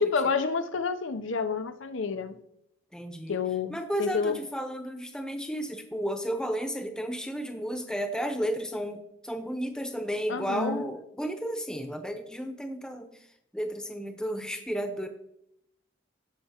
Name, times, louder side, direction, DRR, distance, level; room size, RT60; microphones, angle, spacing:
voice 1, 0.0-2.4 3.3-4.4 10.3-10.9, left 5 dB, 75° left, 0.6 m, -29 dB
voice 2, 2.9-3.4 3.7-13.3 13.5-15.1, equal, 5° left, 0.8 m, -33 dB
16.0 x 5.8 x 2.9 m
head